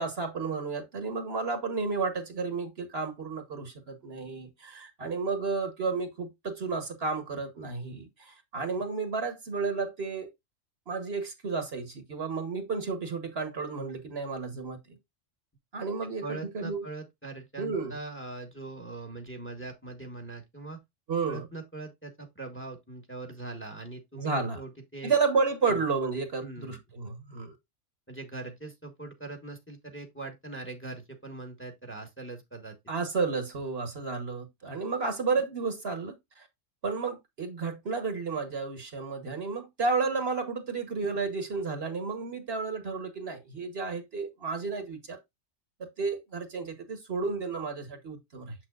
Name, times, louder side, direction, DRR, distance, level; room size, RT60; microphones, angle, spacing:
voice 1, 0.0-10.3 10.9-14.8 15.7-16.3 16.5-16.8 17.6-17.9 21.1-21.4 24.2-24.6 25.0-27.5 32.9-36.5 36.8-45.2 46.0-48.5, right 4 dB, 55° right, 1.4 m, -32 dB
voice 2, 16.2-20.8 21.2-25.1 25.6-25.8 26.4-26.8 28.1-32.7, right 2 dB, 10° left, 1.3 m, -41 dB
7.1 x 6.4 x 2.4 m
omnidirectional pair, 1.3 m